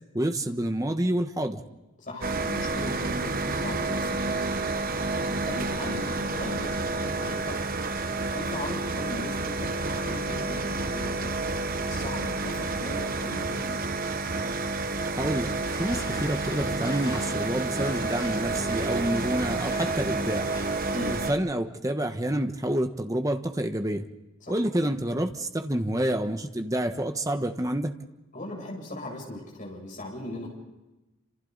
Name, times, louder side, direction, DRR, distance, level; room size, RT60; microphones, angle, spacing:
voice 1, 0.1-1.6 15.2-15.5 15.8-20.5 21.1-24.1 24.5-27.9, right 1 dB, 15° right, 7 dB, 1.3 m, -28 dB
voice 2, 2.0-4.2 5.3-7.8 8.3-11.4 11.8-13.8 20.9-21.2 24.4-24.6 28.3-30.6, left 1 dB, 40° left, -1 dB, 7.5 m, -38 dB
sound 1, 2.2-21.3, right 3 dB, 45° right, 1.0 m, -29 dB
sound 2, 15.6-20.8, left 1 dB, 20° left, 6.6 m, -43 dB
29.0 x 27.0 x 4.1 m, 1.0 s
head